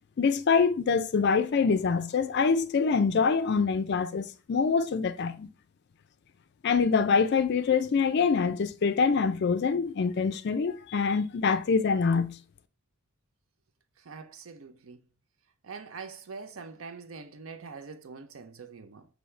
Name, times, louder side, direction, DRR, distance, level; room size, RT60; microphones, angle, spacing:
voice 1, 0.2-5.5 6.6-12.4, left 5 dB, 50° left, 0.4 m, -25 dB
voice 2, 14.0-15.0 15.6-19.1, right 5 dB, 70° right, 0.5 m, -44 dB
5.7 x 2.7 x 3.2 m
head